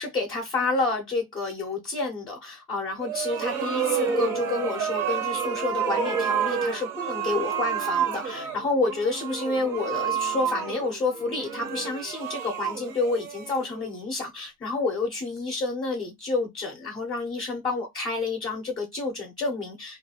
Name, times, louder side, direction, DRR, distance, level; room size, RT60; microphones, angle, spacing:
voice 1, 0.0-20.0, left 3 dB, 10° left, 0.5 m, -29 dB
sound 1, 3.0-14.0, right 7 dB, 65° right, 1.0 m, -29 dB
2.6 x 2.3 x 2.6 m
supercardioid pair, 130°, 43 cm